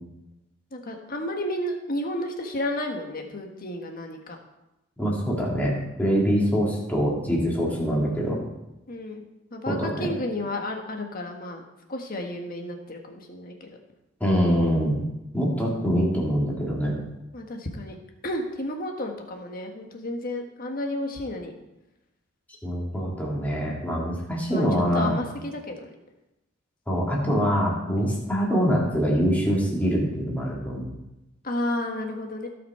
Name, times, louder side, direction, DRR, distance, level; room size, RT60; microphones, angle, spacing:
voice 1, 0.7-4.4 6.3-6.5 8.9-9.2 9.5-11.6 11.9-13.8 17.3-18.0 18.2-21.5 24.5-24.6 24.9-25.9 31.4-32.5, left 1 dB, 45° left, 3 dB, 1.5 m, -32 dB
voice 2, 5.0-5.7 6.0-8.4 9.7-10.1 14.2-15.0 15.3-16.9 22.6-25.1 26.9-30.9, equal, 10° left, -4 dB, 2.6 m, -24 dB
16.5 x 6.0 x 4.4 m, 0.96 s
head